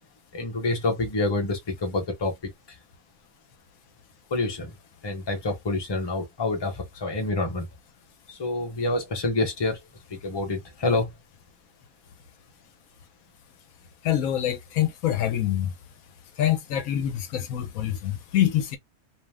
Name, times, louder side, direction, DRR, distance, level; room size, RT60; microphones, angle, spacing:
voice 1, 0.3-2.3 4.3-4.7 5.0-7.7 8.3-9.8 10.2-11.1, left 2 dB, 25° left, 0.7 m, -27 dB
voice 2, 14.0-15.7 16.4-18.8, left 11 dB, 75° left, 1.0 m, -25 dB
2.6 x 2.0 x 3.3 m
omnidirectional pair, 1.5 m